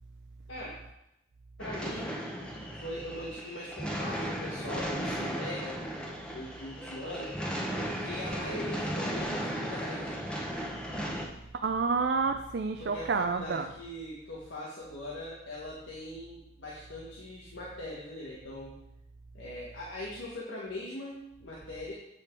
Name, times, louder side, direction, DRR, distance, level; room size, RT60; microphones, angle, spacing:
voice 1, 1.6-2.2 2.8-5.8 6.3-7.4 7.8-10.1 12.8-18.8 19.3-21.9, left 1 dB, 85° left, -5 dB, 1.6 m, -41 dB
sound 1, 1.6-11.3, equal, 5° left, 0.9 m, -36 dB
voice 2, 11.6-13.7, right 4 dB, 60° right, 6 dB, 0.4 m, -29 dB
8.6 x 5.8 x 4.7 m, 0.84 s
head